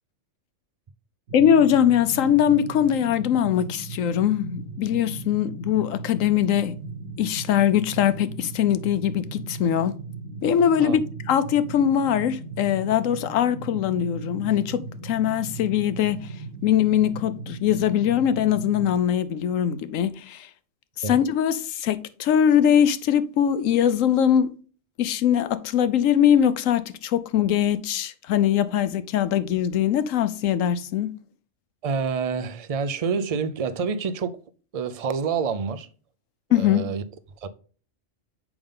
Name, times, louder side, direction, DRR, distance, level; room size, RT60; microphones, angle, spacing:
voice 1, 1.3-6.8 7.2-9.9 10.4-11.0 11.3-16.3 16.6-20.5 21.0-24.5 25.0-31.1 36.5-36.9, left 9 dB, 80° left, 1.1 m, -22 dB
sound 1, 1.3-19.0, right 3 dB, 75° right, 1.4 m, -37 dB
voice 2, 31.8-34.4 34.7-35.9 36.5-37.0 37.4-37.5, right 5 dB, 45° right, 0.4 m, -27 dB
7.1 x 5.3 x 3.7 m
omnidirectional pair, 1.3 m